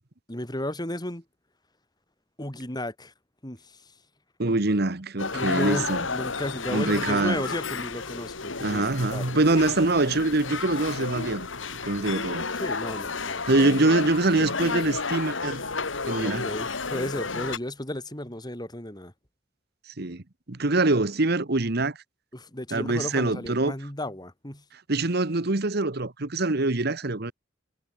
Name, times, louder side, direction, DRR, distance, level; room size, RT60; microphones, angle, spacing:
voice 1, 0.3-1.2 2.4-3.1 3.4-3.8 5.3-9.2 12.6-13.6 16.2-19.1 22.3-24.6, left 1 dB, 20° left, 4.1 m, -34 dB
voice 2, 4.4-6.0 6.7-7.4 8.6-11.5 11.8-12.4 13.5-15.6 16.1-16.5 20.0-20.2 20.5-22.0 22.7-23.7 24.9-27.3, right 2 dB, 55° right, 1.3 m, -24 dB
sound 1, 5.2-17.6, left 4 dB, 85° left, 2.8 m, -32 dB
head